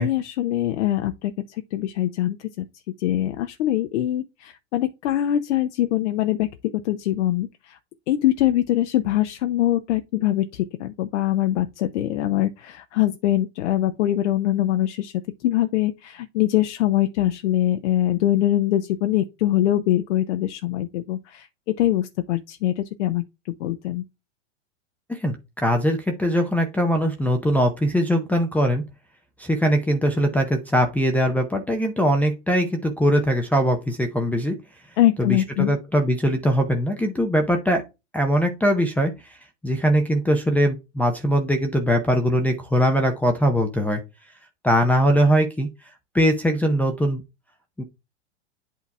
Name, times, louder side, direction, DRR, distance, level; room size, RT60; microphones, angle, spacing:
voice 1, 0.0-2.6 3.0-7.8 8.1-15.1 15.4-23.2 23.6-24.0 35.0-35.7, left 13 dB, 70° left, 0.6 m, -23 dB
voice 2, 25.1-28.8 29.4-34.6 35.2-37.8 38.1-39.4 39.6-44.0 44.6-45.7 46.1-47.2 47.8-47.9, equal, 5° left, 0.5 m, -21 dB
8.4 x 2.8 x 4.6 m
hypercardioid pair, 125°, 37 cm